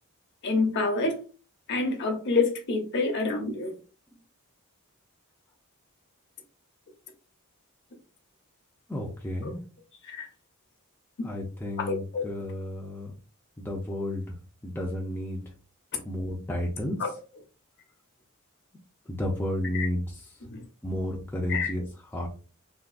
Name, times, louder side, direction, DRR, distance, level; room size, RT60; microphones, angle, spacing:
voice 1, 0.4-1.2 1.7-3.7 10.1-10.3 11.8-12.3 17.0-17.1 19.7-19.9 20.5-20.6 21.5-21.7, left 3 dB, 50° left, 0.7 m, -27 dB
voice 2, 8.9-9.6 11.2-13.1 13.6-15.4 16.0-17.1 19.1-20.4 20.8-22.3, left 1 dB, 10° left, 0.4 m, -32 dB
3.5 x 2.3 x 2.4 m
head